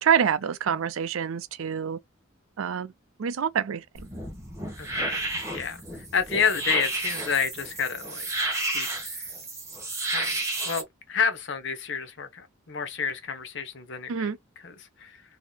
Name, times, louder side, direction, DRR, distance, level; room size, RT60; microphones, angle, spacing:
voice 1, 0.0-2.0 2.6-2.9 3.2-4.1 14.1-14.4, right 7 dB, 85° right, 0.4 m, -26 dB
sound 1, 4.0-10.8, right 2 dB, 15° right, 1.1 m, -31 dB
voice 2, 4.8-5.2 5.5-8.2 8.6-9.3 10.1-10.4 10.6-14.3 14.6-15.2, left 6 dB, 60° left, 0.9 m, -30 dB
4.0 x 2.7 x 2.2 m
head